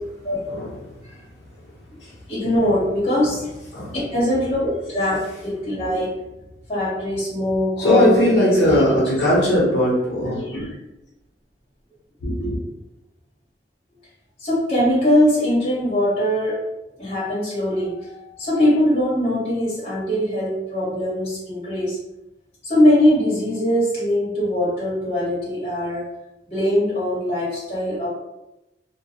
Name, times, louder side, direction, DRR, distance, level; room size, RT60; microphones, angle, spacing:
voice 1, 2.3-3.5 3.9-6.2 6.7-9.1 14.4-16.7 17.0-22.0 22.6-26.1 26.5-28.1, left 1 dB, 35° left, -8 dB, 1.2 m, -21 dB
voice 2, 7.8-10.7 12.2-12.6, left 1 dB, 85° left, -6 dB, 0.8 m, -19 dB
2.3 x 2.2 x 2.8 m, 0.96 s
head